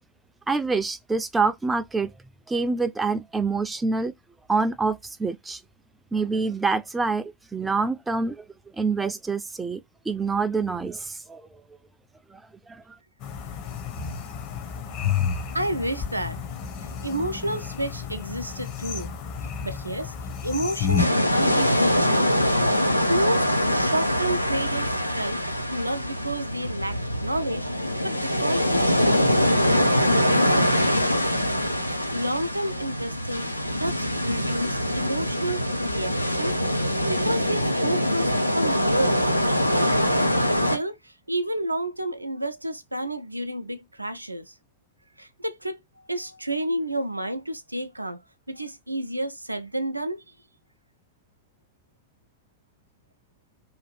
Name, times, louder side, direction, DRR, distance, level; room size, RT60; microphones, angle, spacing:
voice 1, 0.5-2.1 2.5-4.1 4.5-5.6 6.1-8.4 8.8-9.8 10.1-11.5 12.3-12.4 12.7-12.8, right 4 dB, 10° right, 0.3 m, -26 dB
sound 1, 13.2-21.0, left 7 dB, 40° left, 0.7 m, -30 dB
voice 2, 15.5-16.4 17.0-19.1 19.6-20.2 20.4-22.6 23.1-27.7 28.0-31.4 31.8-33.5 33.8-36.6 37.1-40.1 40.5-44.5 45.2-45.8 46.1-48.2 48.5-50.2, right 1 dB, 85° right, 0.4 m, -31 dB
sound 2, 21.0-40.8, equal, 90° left, 0.4 m, -23 dB
2.7 x 2.3 x 3.2 m
figure-of-eight pair, 90°, 0 cm